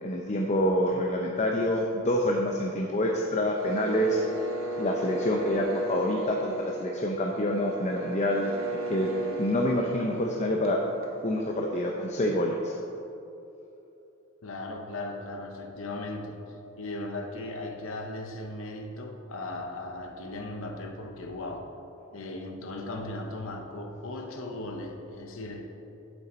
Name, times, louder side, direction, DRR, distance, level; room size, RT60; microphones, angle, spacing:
voice 1, 0.0-4.2 4.8-9.1 9.4-10.8 11.2-12.8, left 1 dB, 35° left, 0 dB, 0.6 m, -27 dB
sound 1, 3.6-11.3, right 1 dB, 70° right, 1.3 m, -35 dB
voice 2, 14.4-16.4 16.8-21.7 22.1-25.7, left 2 dB, 65° left, 3 dB, 0.8 m, -37 dB
8.7 x 7.6 x 4.3 m, 2.9 s
head